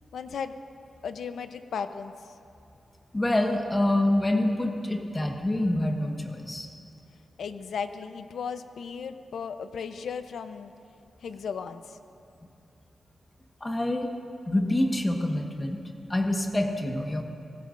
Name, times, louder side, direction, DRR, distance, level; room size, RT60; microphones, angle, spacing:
voice 1, 0.1-0.6 1.0-2.1 7.4-10.7 11.2-12.0, left 6 dB, 85° left, 9 dB, 0.7 m, -35 dB
voice 2, 3.1-6.7 13.6-14.1 14.5-15.8 16.1-17.2, left 1 dB, 15° left, 2 dB, 1.4 m, -26 dB
25.5 x 19.0 x 2.6 m, 2.7 s
wide cardioid pair, 165°, 0 cm